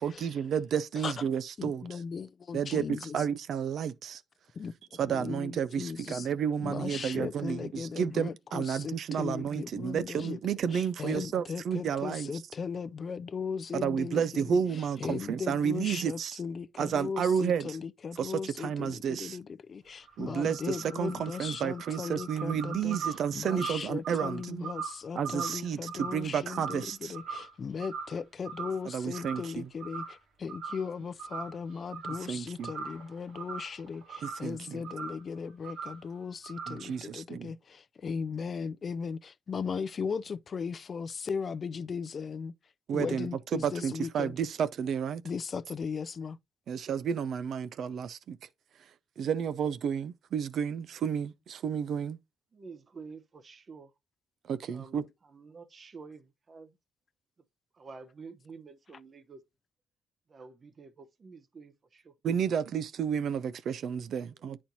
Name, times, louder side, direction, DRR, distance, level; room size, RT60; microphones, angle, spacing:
voice 1, 0.0-2.0 2.5-4.2 5.0-12.3 13.7-16.4 16.8-17.8 18.2-19.4 20.2-24.7 25.2-27.2 28.8-29.7 32.2-32.7 34.2-34.8 36.7-37.5 42.9-45.2 46.7-48.4 49.2-52.2 54.5-55.0 62.2-64.6, right 7 dB, 65° right, 0.4 m, -31 dB
voice 2, 1.6-3.2 4.6-4.7 5.1-6.3 6.6-10.4 10.7-14.6 15.0-23.0 23.3-42.5 42.9-44.3 45.2-46.4, left 5 dB, 45° left, 0.4 m, -37 dB
sound 1, 19.9-27.5 27.8-28.2 28.5-29.5 29.8-30.2 30.5-30.9 31.2-32.3 32.6-34.5 34.8-35.2 35.6-36.0 36.4-36.9, right 5 dB, 90° right, 1.8 m, -41 dB
voice 3, 52.5-53.9 54.7-56.8 57.7-59.4 60.3-62.1 64.3-64.4, right 4 dB, 40° right, 0.8 m, -49 dB
9.0 x 4.3 x 2.7 m
cardioid pair, 90°, 0 cm